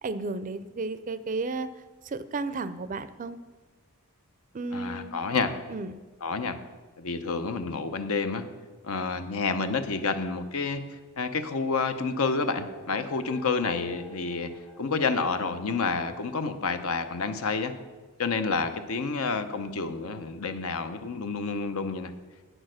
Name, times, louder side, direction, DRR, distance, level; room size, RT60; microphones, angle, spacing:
voice 1, 0.0-1.7 2.0-3.4 4.5-5.2 5.7-6.0, right 3 dB, 35° right, 14 dB, 0.4 m, -33 dB
voice 2, 4.7-5.5 6.2-6.6 7.0-8.5 8.8-14.5 14.8-17.7 18.2-22.1, left 4 dB, 70° left, 9 dB, 0.7 m, -29 dB
sound 1, 11.8-16.2, equal, 45° left, 1.6 m, -49 dB
9.0 x 6.3 x 6.3 m, 1.3 s
head